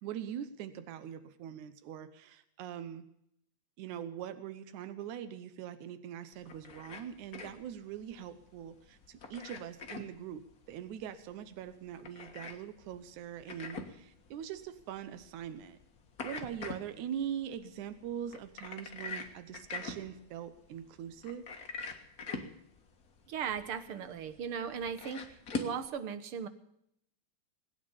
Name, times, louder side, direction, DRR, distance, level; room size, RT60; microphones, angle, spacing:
voice 1, 0.0-3.1 3.8-15.8 16.2-21.4, right 9 dB, 85° right, 11 dB, 2.4 m, -42 dB
sound 1, 6.3-25.8, left 4 dB, 40° left, 1.6 m, -45 dB
voice 2, 23.3-25.2 25.5-26.5, right 7 dB, 60° right, 11 dB, 1.7 m, -37 dB
20.5 x 9.6 x 7.1 m, 0.73 s
omnidirectional pair, 3.4 m